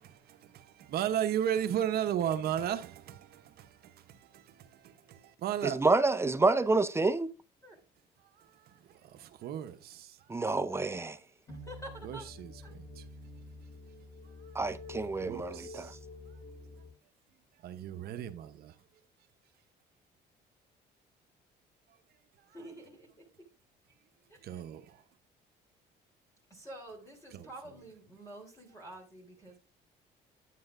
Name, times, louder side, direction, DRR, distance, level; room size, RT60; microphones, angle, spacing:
voice 1, 0.0-5.8 8.2-10.4 12.0-13.1 14.2-14.6 15.2-16.0 16.3-16.4 17.5-18.8 22.4-22.7 24.4-25.0 27.3-27.8 28.7-28.8, right 10 dB, 65° right, 0.9 m, -36 dB
voice 2, 5.6-7.3 10.3-11.2 14.5-15.8, right 3 dB, 15° right, 0.6 m, -28 dB
sound 1, 11.5-16.9, left 2 dB, 45° left, 2.2 m, -48 dB
voice 3, 11.5-12.2 12.6-12.7 22.5-23.1 26.6-29.6, right 1 dB, 20° left, 3.5 m, -48 dB
9.5 x 8.9 x 2.6 m
cardioid pair, 110°, 17 cm